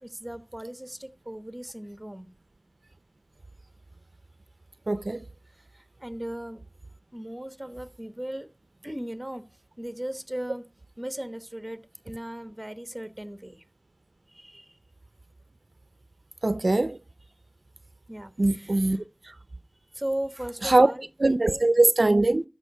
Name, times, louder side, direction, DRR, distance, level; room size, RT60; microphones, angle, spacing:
voice 1, 0.0-2.3 5.7-6.6 7.1-8.5 8.8-9.4 9.8-10.7 11.0-13.6 14.3-14.7 18.1-18.7 19.9-21.6, right 1 dB, 20° right, 1.1 m, -37 dB
voice 2, 4.9-5.2 16.4-17.0 18.4-19.0 19.2-19.3 20.6-20.9 21.2-22.4, right 2 dB, 70° right, 0.5 m, -21 dB
13.5 x 5.5 x 5.3 m
wide cardioid pair, 45°, 0 cm